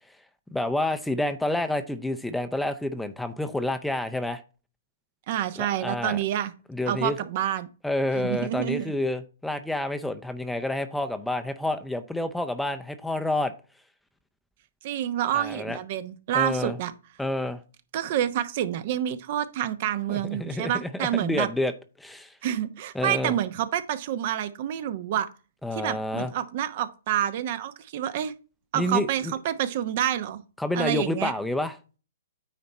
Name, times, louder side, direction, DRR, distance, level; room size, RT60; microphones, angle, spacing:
voice 1, 0.5-4.4 5.6-6.2 6.7-7.2 7.8-13.5 15.3-15.8 16.3-16.8 17.2-17.6 20.1-21.7 22.0-22.3 22.9-23.4 25.6-26.3 28.7-29.3 30.6-31.8, left 1 dB, 5° left, 0.6 m, -29 dB
voice 2, 5.3-6.5 6.9-7.7 8.2-8.9 14.8-16.9 17.9-21.5 22.4-25.3 25.7-28.3 28.7-30.4 30.7-31.3, right 11 dB, 50° right, 0.9 m, -28 dB
9.4 x 4.3 x 4.1 m
hypercardioid pair, 130°, 0 cm